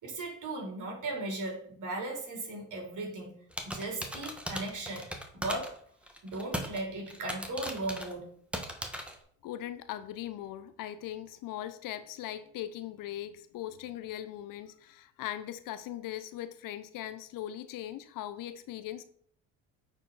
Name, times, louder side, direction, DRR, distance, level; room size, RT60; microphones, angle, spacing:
voice 1, 0.0-3.3 3.6-5.8 6.2-8.3, right 2 dB, 45° right, 0 dB, 3.3 m, -37 dB
sound 1, 3.5-5.8 6.1-6.8 7.1-8.1 8.5-9.2, equal, 5° right, 1.4 m, -37 dB
voice 2, 9.4-19.0, left 12 dB, 50° left, 12 dB, 0.7 m, -40 dB
8.9 x 4.6 x 4.0 m, 0.62 s
hypercardioid pair, 70°, 41 cm